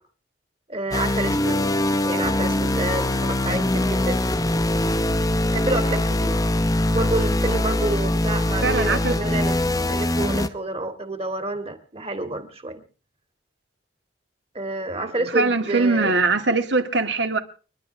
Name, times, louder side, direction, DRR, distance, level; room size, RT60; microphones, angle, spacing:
voice 1, 0.7-1.7 2.0-4.2 5.5-6.4 6.9-12.8 14.5-16.2, right 2 dB, 30° right, 2.2 m, -28 dB
sound 1, 0.9-10.5, left 1 dB, 20° left, 0.9 m, -22 dB
voice 2, 8.6-9.2 15.0-17.4, right 3 dB, 70° right, 2.1 m, -22 dB
29.5 x 12.0 x 3.4 m
head